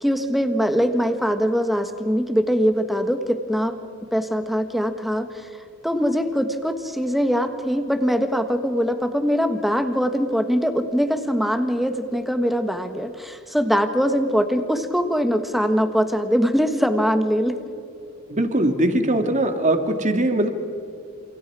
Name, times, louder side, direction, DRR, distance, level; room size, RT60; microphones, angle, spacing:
voice 1, 0.0-3.8 4.1-5.3 5.8-17.5, equal, ahead, 7 dB, 1.4 m, -22 dB
voice 2, 18.3-20.5, right 1 dB, 35° right, 6 dB, 2.0 m, -21 dB
29.5 x 28.0 x 4.9 m, 2.7 s
head